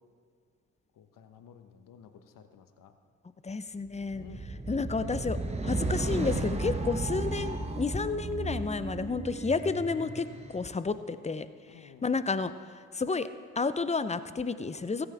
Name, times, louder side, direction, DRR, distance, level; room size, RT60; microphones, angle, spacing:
voice 1, 0.9-2.9 4.1-4.5 9.3-9.5 11.7-12.2, left 8 dB, 60° left, 8 dB, 1.2 m, -53 dB
voice 2, 3.4-4.2 4.7-10.3 10.5-11.5 12.0-12.5 12.9-13.3 13.6-15.1, left 4 dB, 20° left, 13 dB, 0.7 m, -31 dB
sound 1, 4.1-10.6, right 2 dB, 15° right, 1.4 m, -34 dB
16.0 x 15.0 x 3.5 m, 2.2 s
hypercardioid pair, 45°, 36 cm